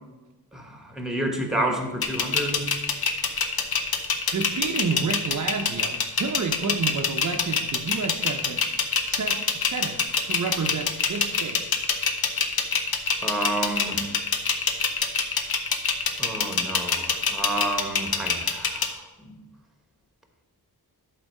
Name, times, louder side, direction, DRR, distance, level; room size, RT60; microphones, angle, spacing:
voice 1, 0.5-2.6 13.2-14.1 16.2-19.3, right 1 dB, ahead, 3 dB, 1.2 m, -30 dB
sound 1, 2.0-18.9, left 5 dB, 65° left, 0.9 m, -25 dB
voice 2, 4.3-8.6 9.0-11.6, right 4 dB, 45° right, 2 dB, 0.6 m, -30 dB
11.5 x 4.0 x 5.3 m, 1.1 s
wide cardioid pair, 140°, 40 cm